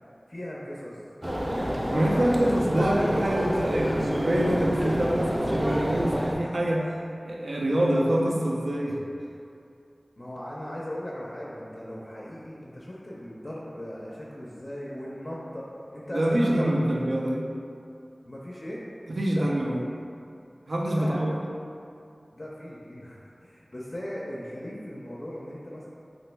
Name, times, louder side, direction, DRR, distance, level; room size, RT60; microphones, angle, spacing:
voice 1, 0.3-1.0 1.5-2.6 10.2-16.7 18.2-18.8 19.2-19.6 20.9-21.4 22.3-25.8, equal, 45° left, -6 dB, 0.4 m, -38 dB
sound 1, 1.2-6.3, equal, 25° right, 0.4 m, -28 dB
voice 2, 1.9-6.9 7.2-9.0 16.1-17.4 19.1-19.8 20.7-21.4, right 1 dB, 90° right, -2 dB, 0.4 m, -25 dB
2.9 x 2.6 x 3.3 m, 2.5 s
wide cardioid pair, 55°, 0 cm